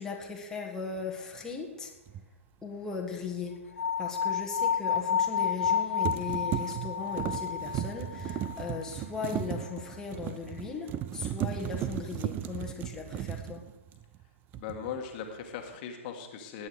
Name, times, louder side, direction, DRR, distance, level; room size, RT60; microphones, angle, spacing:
voice 1, 0.0-1.9 2.6-13.6, left 5 dB, 10° left, -1 dB, 1.8 m, -38 dB
sound 1, 2.1-2.2 5.4-5.7 6.0-14.2 14.5-15.0, right 11 dB, 25° right, 0.6 m, -36 dB
sound 2, 3.8-8.9, left 7 dB, 70° left, 0.4 m, -30 dB
voice 2, 14.5-16.7, left 7 dB, 40° left, 4 dB, 1.7 m, -39 dB
20.5 x 8.9 x 4.8 m, 1.1 s
figure-of-eight pair, 115°, 7 cm